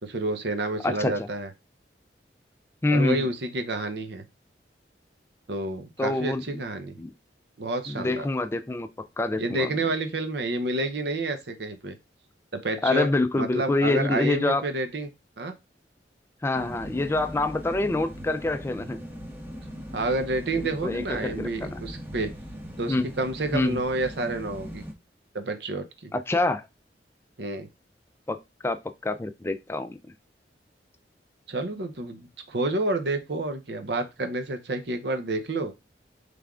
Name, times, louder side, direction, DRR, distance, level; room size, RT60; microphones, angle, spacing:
voice 1, 0.0-1.5 2.9-4.3 5.5-7.0 7.6-8.3 9.4-12.0 12.5-13.1 13.4-15.1 15.4-15.6 19.9-22.3 22.8-24.8 25.3-26.1 27.4-27.7 31.5-35.7, right 2 dB, 65° right, 0.7 m, -29 dB
voice 2, 0.8-1.3 2.8-3.3 6.0-6.4 7.0-7.1 7.9-8.9 9.2-9.7 12.8-14.7 16.4-19.0 20.6-21.8 22.9-23.1 23.5-23.8 26.1-26.7 28.3-28.4 28.6-30.0, left 2 dB, 15° left, 0.3 m, -26 dB
sound 1, 16.5-24.9, equal, 10° right, 0.8 m, -40 dB
3.5 x 3.4 x 3.6 m
head